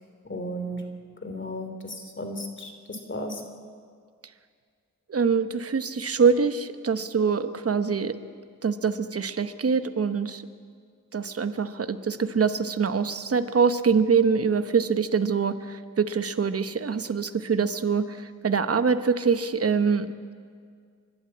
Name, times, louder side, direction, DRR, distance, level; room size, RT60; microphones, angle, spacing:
voice 1, 0.2-0.8 1.2-3.4, equal, 40° left, 6 dB, 2.9 m, -34 dB
voice 2, 5.1-8.2 8.6-10.4 11.1-20.3, right 5 dB, 50° right, 11 dB, 1.0 m, -24 dB
29.5 x 12.0 x 8.6 m, 2.1 s
wide cardioid pair, 90°, 30 cm